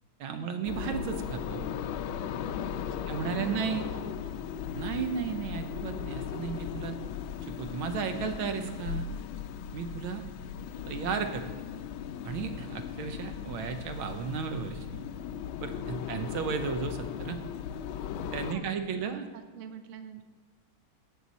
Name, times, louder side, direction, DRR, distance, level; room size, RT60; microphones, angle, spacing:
voice 1, 0.2-1.6 3.1-3.9 4.7-7.0 7.4-9.1 9.7-10.2 10.9-11.5 12.2-15.0 15.6-17.4 18.3-19.3, right 6 dB, 80° right, 7 dB, 1.7 m, -34 dB
sound 1, 0.6-18.5, left 8 dB, 80° left, 1.4 m, -37 dB
voice 2, 2.9-4.3 10.8-11.1 16.0-16.3 18.5-20.2, right 7 dB, 65° right, 8 dB, 0.7 m, -49 dB
16.5 x 6.4 x 4.1 m, 1.4 s
omnidirectional pair, 2.3 m